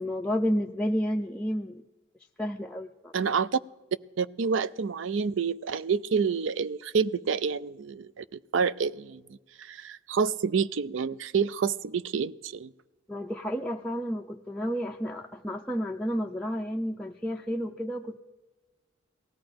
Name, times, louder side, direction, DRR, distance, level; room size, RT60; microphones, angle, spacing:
voice 1, 0.0-1.8 2.4-3.2 13.1-18.2, equal, 5° left, 0 dB, 0.4 m, -31 dB
voice 2, 3.1-3.6 4.2-8.2 8.5-9.2 9.6-12.7, right 5 dB, 75° right, 18 dB, 0.4 m, -28 dB
18.5 x 13.5 x 5.2 m, 1.1 s
head